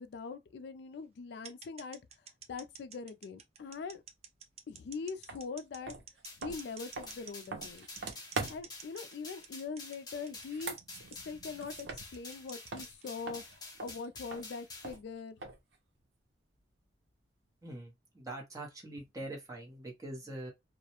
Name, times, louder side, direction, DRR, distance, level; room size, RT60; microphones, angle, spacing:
voice 1, 0.0-2.0 2.5-4.0 4.7-6.0 6.4-7.9 8.5-10.8 11.1-15.4, left 5 dB, 65° left, 0.3 m, -42 dB
sound 1, 1.4-14.1, right 7 dB, 35° right, 0.4 m, -51 dB
sound 2, 5.3-5.4 5.8-8.8 10.4-12.4 12.7-15.8, right 3 dB, 75° right, 0.7 m, -43 dB
sound 3, 6.2-15.0, left 3 dB, 20° left, 0.7 m, -49 dB
voice 2, 17.6-20.5, right 1 dB, 20° right, 0.8 m, -43 dB
2.3 x 2.1 x 2.8 m
head